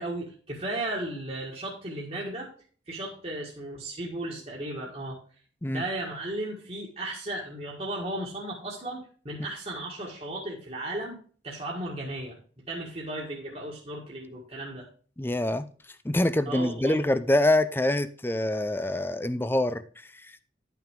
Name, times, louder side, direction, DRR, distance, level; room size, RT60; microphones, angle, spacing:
voice 1, 0.0-2.5 2.9-5.2 5.7-11.2 11.4-12.4 12.7-14.9 16.5-16.9, right 1 dB, 35° right, 1.7 m, -35 dB
voice 2, 15.2-15.6 16.0-20.3, left 1 dB, 10° left, 0.5 m, -25 dB
11.0 x 5.9 x 3.7 m
head